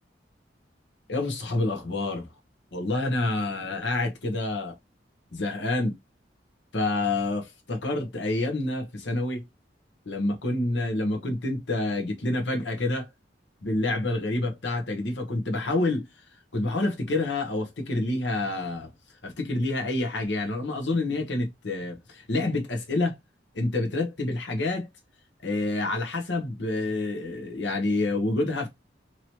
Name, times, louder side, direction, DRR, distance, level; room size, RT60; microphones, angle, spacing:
voice 1, 1.1-2.3 2.7-4.7 5.3-5.9 6.7-9.4 10.1-13.1 13.6-16.0 16.5-18.9 19.2-23.1 23.5-24.9 25.4-28.7, left 2 dB, 75° left, 1.0 m, -28 dB
2.9 x 2.8 x 2.9 m
head